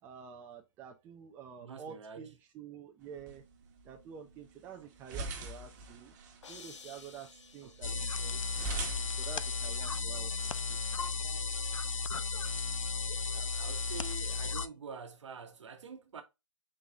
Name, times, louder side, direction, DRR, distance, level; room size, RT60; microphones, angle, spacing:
voice 1, 0.0-3.4 3.8-6.1 6.5-7.3 7.5-8.4 9.2-10.8, right 7 dB, 10° right, 0.4 m, -49 dB
voice 2, 1.6-2.4 7.6-8.1 13.2-16.2, right 5 dB, 65° right, 0.9 m, -47 dB
sound 1, 3.0-10.0, right 2 dB, 35° right, 1.0 m, -44 dB
sound 2, 6.4-8.5, left 5 dB, 65° left, 0.8 m, -53 dB
sound 3, 7.8-14.7, left 4 dB, 85° left, 0.4 m, -34 dB
3.9 x 3.2 x 3.4 m
hypercardioid pair, 140°, 16 cm